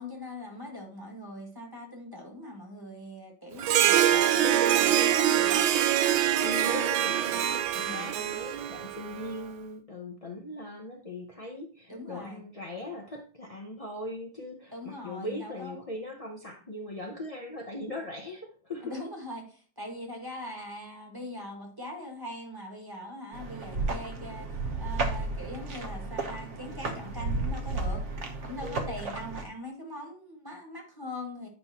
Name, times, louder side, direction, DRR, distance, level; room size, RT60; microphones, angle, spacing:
voice 1, 0.0-5.7 7.8-8.1 11.9-12.4 14.7-15.8 18.8-24.5 24.8-28.0 28.4-31.5, left 1 dB, 10° right, 0 dB, 1.7 m, -41 dB
Harp, 3.6-9.3, right 11 dB, 85° right, 1.5 m, -24 dB
voice 2, 6.4-19.0 28.6-28.9, left 1 dB, 40° left, 0 dB, 0.5 m, -39 dB
sound 1, 23.3-29.4, right 3 dB, 45° right, 1.3 m, -33 dB
9.6 x 5.5 x 2.9 m, 0.40 s
omnidirectional pair, 2.1 m